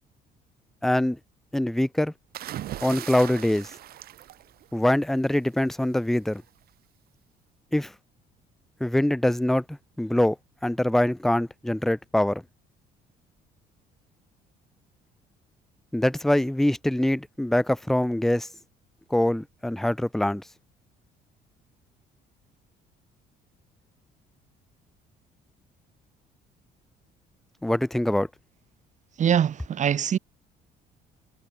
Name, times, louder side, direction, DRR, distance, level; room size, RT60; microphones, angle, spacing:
voice 1, 0.8-1.2 1.5-2.1 2.8-3.7 4.7-6.4 7.7-7.9 8.8-10.4 10.6-12.4 15.9-18.5 19.1-20.4 27.6-28.3, left 1 dB, ahead, 0.4 m, -24 dB
sound 1, 2.3-5.1 6.3-6.6, right 13 dB, 65° right, 1.8 m, -38 dB
voice 2, 29.2-30.2, right 9 dB, 45° right, 1.7 m, -23 dB
cardioid pair, 110°, 17 cm